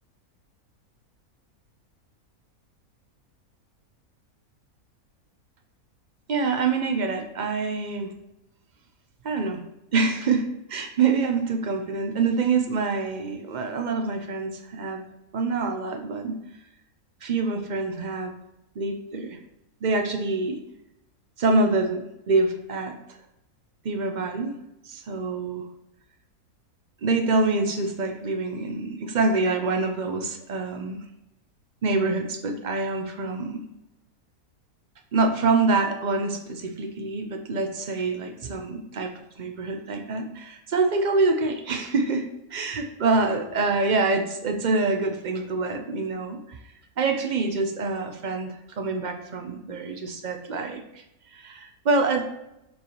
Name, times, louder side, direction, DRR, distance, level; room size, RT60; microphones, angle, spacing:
voice 1, 6.3-8.1 9.2-9.6 9.9-15.0 15.3-16.4 17.2-18.3 18.8-19.4 19.8-20.6 21.4-22.9 23.8-24.5 24.9-25.6 27.0-31.0 31.8-33.6 35.1-39.1 39.4-42.3 42.5-46.6 47.0-50.8 51.3-52.2, right 3 dB, 70° right, 5 dB, 0.4 m, -26 dB
6.9 x 4.7 x 3.1 m, 0.86 s
omnidirectional pair, 1.6 m